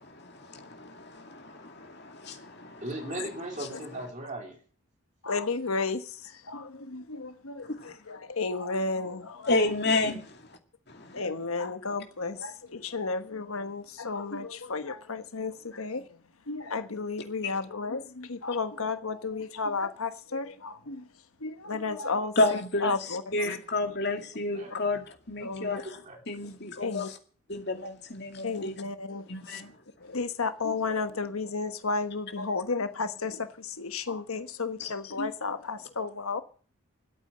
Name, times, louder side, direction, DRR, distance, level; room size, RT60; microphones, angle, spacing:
voice 1, 0.1-2.8 7.8-7.9 9.5-10.2 10.9-11.2 17.4-17.5 22.4-22.9 23.3-25.9 26.3-27.1 27.5-28.7 29.3-29.7 34.8-34.9, left 2 dB, 50° left, 2.3 m, -30 dB
voice 2, 2.8-4.6 10.0-10.2 24.5-24.7 26.0-26.2, right 1 dB, 35° right, 3.1 m, -37 dB
voice 3, 5.2-9.7 11.1-16.1 16.5-21.0 21.4-23.5 23.8-24.0 24.7-24.8 25.4-25.8 26.8-27.1 28.4-29.6 30.0-36.4, left 4 dB, 90° left, 1.3 m, -33 dB
13.5 x 8.6 x 8.7 m
head